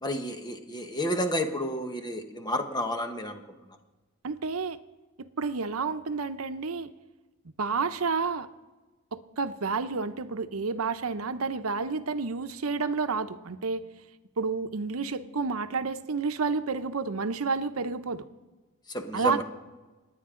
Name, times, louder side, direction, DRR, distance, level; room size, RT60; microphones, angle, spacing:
voice 1, 0.0-3.4 18.9-19.4, equal, 20° left, 6 dB, 1.1 m, -30 dB
voice 2, 4.2-4.8 5.2-6.9 7.6-8.5 9.1-13.8 14.4-18.2 19.1-19.4, right 4 dB, 85° right, 11 dB, 0.8 m, -30 dB
28.0 x 9.6 x 3.8 m, 1.2 s
head